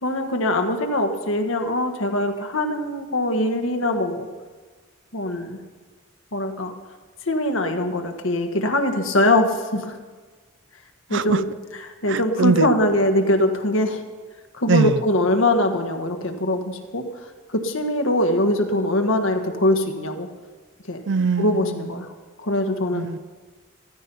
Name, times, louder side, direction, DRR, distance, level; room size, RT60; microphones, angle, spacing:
voice 1, 0.0-4.3 5.1-5.6 6.3-6.7 7.3-9.9 11.1-11.4 11.8-14.0 14.6-17.0 17.5-20.3 20.9-21.0 21.4-22.1 22.4-23.1, left 1 dB, 80° left, 1.5 m, -22 dB
voice 2, 12.1-12.7 14.7-15.0 21.1-21.9 22.9-23.2, right 4 dB, 60° right, 0.4 m, -22 dB
14.5 x 14.0 x 5.5 m
head